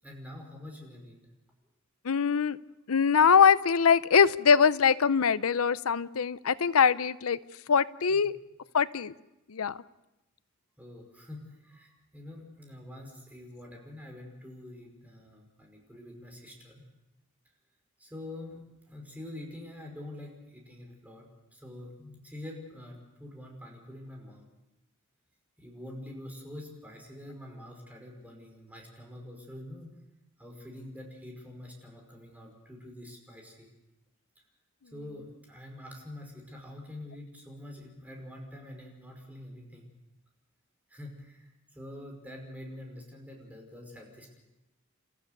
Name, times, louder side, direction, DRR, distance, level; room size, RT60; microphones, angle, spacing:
voice 1, 0.0-1.2 8.1-8.3 10.8-16.8 18.0-21.3 21.5-24.5 25.6-29.9 30.4-33.7 34.9-39.9 40.9-44.4, left 1 dB, 10° right, 0 dB, 5.4 m, -46 dB
voice 2, 2.0-2.6 2.9-7.4 7.7-8.3 8.7-9.1 9.5-9.8, left 6 dB, 75° left, 16 dB, 0.6 m, -23 dB
30.0 x 14.5 x 6.8 m, 0.95 s
head